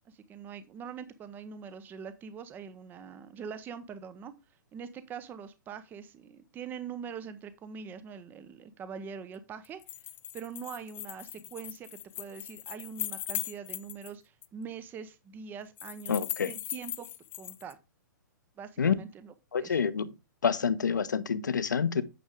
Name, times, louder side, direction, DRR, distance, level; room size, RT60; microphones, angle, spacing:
voice 1, 0.1-4.3 4.7-9.8 10.3-17.1 17.4-17.8 18.6-19.8, right 6 dB, 20° right, 0.7 m, -43 dB
sound 1, 9.6-14.1 14.4-14.5 15.8-17.7, left 13 dB, 20° left, 0.5 m, -39 dB
voice 2, 16.1-16.5 18.8-18.9 19.5-20.1 20.4-22.0, left 6 dB, 65° left, 0.9 m, -27 dB
9.4 x 6.4 x 3.5 m
figure-of-eight pair, 110°, 11 cm